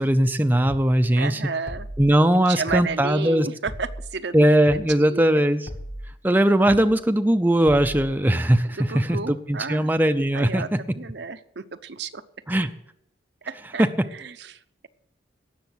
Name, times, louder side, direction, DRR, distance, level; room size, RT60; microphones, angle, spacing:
voice 1, 0.0-1.4 2.0-3.5 4.3-5.7 6.2-10.8 12.5-12.7 13.8-13.9, right 1 dB, 10° right, 8 dB, 0.5 m, -20 dB
sound 1, 0.7-0.9 1.7-2.0 2.7-2.9 3.7-4.0 4.7-4.9 5.7-6.0 6.7-6.9 7.7-8.0, equal, 45° left, 1.6 m, -36 dB
voice 2, 1.2-1.9 2.5-4.5 5.0-5.4 8.8-9.9 10.3-10.7 11.0-12.2 13.5-14.9, right 4 dB, 65° right, 10 dB, 0.7 m, -32 dB
17.5 x 6.9 x 6.3 m, 0.73 s
head